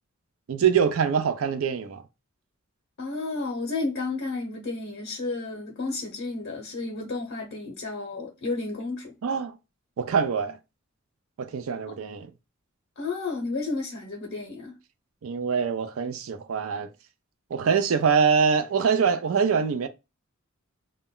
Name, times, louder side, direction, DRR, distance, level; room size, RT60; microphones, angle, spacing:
voice 1, 0.5-2.0 9.2-9.6 10.0-10.6 11.4-12.3 15.2-16.9 17.5-19.9, right 6 dB, 80° right, 0.4 m, -24 dB
voice 2, 3.0-9.2 13.0-14.7, left 3 dB, 65° left, 0.7 m, -32 dB
2.2 x 2.1 x 3.6 m
head